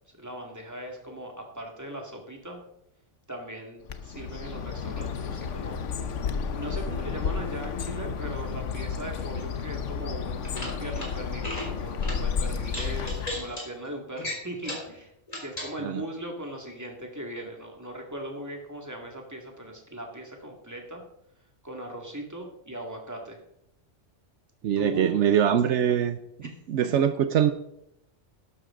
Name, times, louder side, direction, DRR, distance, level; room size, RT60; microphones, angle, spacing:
voice 1, 0.1-2.6 3.3-5.8 6.5-15.1 15.4-21.0 21.6-23.4 24.8-25.2 25.7-25.8 26.4-26.5, right 1 dB, 15° right, 1 dB, 2.2 m, -39 dB
Bird, 3.9-13.6, left 6 dB, 85° left, 1.2 m, -32 dB
sound 1, 10.4-11.1 11.4-11.7 12.0-12.2 12.7-13.6 14.2-14.9 15.3-15.7, left 1 dB, 30° left, 3.8 m, -35 dB
voice 2, 24.6-26.2 26.7-27.5, right 9 dB, 80° right, 10 dB, 1.0 m, -23 dB
12.5 x 12.0 x 3.8 m, 0.77 s
omnidirectional pair, 1.2 m